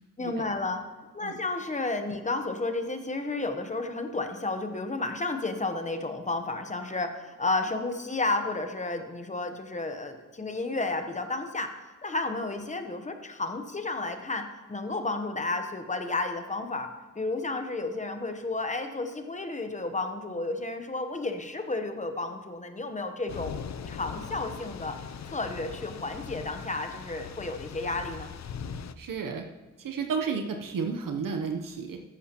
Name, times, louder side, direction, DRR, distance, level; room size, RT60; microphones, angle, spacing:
voice 1, 0.2-0.8 1.1-11.7 12.0-23.5 23.9-25.0 25.3-28.3, left 2 dB, 20° left, 6 dB, 0.9 m, -32 dB
Thunder / Rain, 23.3-28.9, left 7 dB, 55° left, 0.5 m, -40 dB
voice 2, 29.0-29.5 29.8-32.0, right 5 dB, 80° right, 4 dB, 0.9 m, -32 dB
14.0 x 11.0 x 2.9 m, 1.3 s
wide cardioid pair, 145°, 32 cm